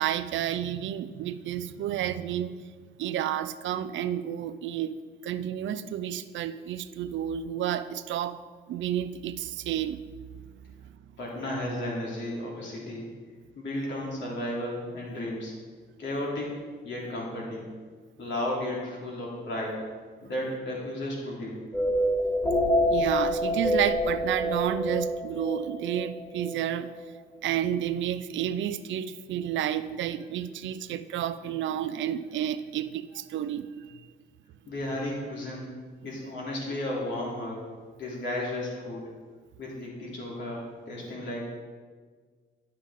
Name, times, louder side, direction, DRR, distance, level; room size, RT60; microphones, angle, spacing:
voice 1, 0.0-2.6 3.0-8.4 8.7-10.0 22.9-26.9 27.4-34.0, right 10 dB, 70° right, 13 dB, 0.5 m, -31 dB
voice 2, 11.2-13.1 13.5-15.5 16.0-16.5 16.8-17.7 18.2-19.8 20.2-21.6 34.7-35.7 36.0-37.6 38.0-39.0 39.6-41.4, left 1 dB, 65° left, -4 dB, 2.9 m, -33 dB
sound 1, 21.7-26.6, equal, 10° left, 2.7 m, -27 dB
10.0 x 7.4 x 3.6 m, 1.6 s
cardioid pair, 90°, 20 cm